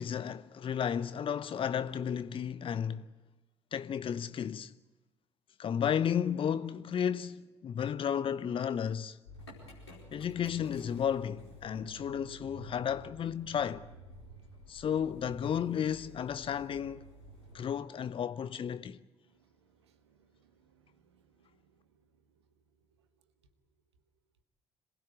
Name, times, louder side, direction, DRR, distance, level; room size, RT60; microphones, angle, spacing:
voice 1, 0.0-3.1 3.7-4.7 5.6-9.2 10.1-13.9 14.7-17.0 17.5-19.0, left 8 dB, 40° left, 0.9 m, -33 dB
Motor vehicle (road) / Engine starting, 9.2-17.6, equal, 80° left, 4.7 m, -51 dB
voice 2, 19.2-22.1, right 7 dB, 75° right, 1.6 m, -69 dB
26.5 x 19.5 x 9.5 m
figure-of-eight pair, 45°, 14 cm